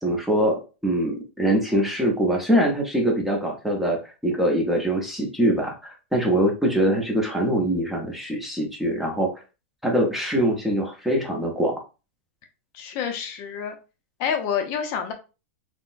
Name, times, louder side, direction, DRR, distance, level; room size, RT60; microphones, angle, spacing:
voice 1, 0.0-9.3 9.8-11.8, right 1 dB, 5° right, 1 dB, 0.6 m, -23 dB
voice 2, 12.7-13.7 14.2-15.1, left 7 dB, 45° left, 5 dB, 0.5 m, -28 dB
3.6 x 2.1 x 2.4 m, 0.31 s
supercardioid pair, 140°, 7 cm